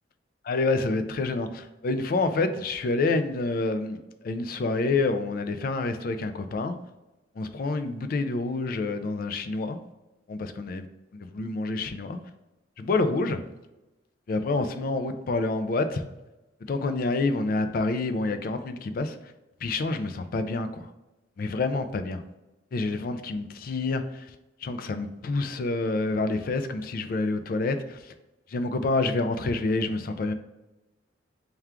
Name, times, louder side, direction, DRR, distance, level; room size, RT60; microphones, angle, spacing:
voice 1, 0.4-6.8 7.4-9.8 10.3-12.2 12.8-13.4 14.3-16.0 16.7-19.2 19.6-20.9 21.4-22.2 22.7-24.3 24.6-28.0 28.5-30.3, left 3 dB, 50° left, 9 dB, 0.3 m, -28 dB
3.6 x 2.3 x 4.4 m, 1.0 s
head